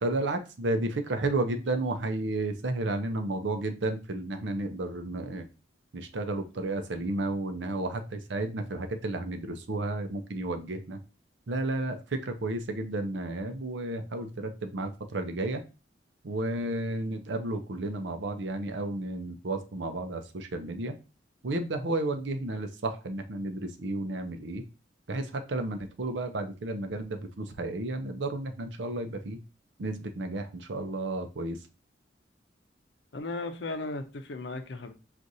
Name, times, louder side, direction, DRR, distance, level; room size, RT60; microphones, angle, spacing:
voice 1, 0.0-5.4 5.9-11.0 11.5-15.6 16.2-20.9 21.4-24.6 25.1-29.4 29.8-31.6, right 2 dB, 80° right, 6 dB, 0.6 m, -32 dB
voice 2, 33.1-34.9, left 2 dB, 75° left, 7 dB, 0.6 m, -36 dB
6.2 x 2.5 x 2.7 m, 0.32 s
head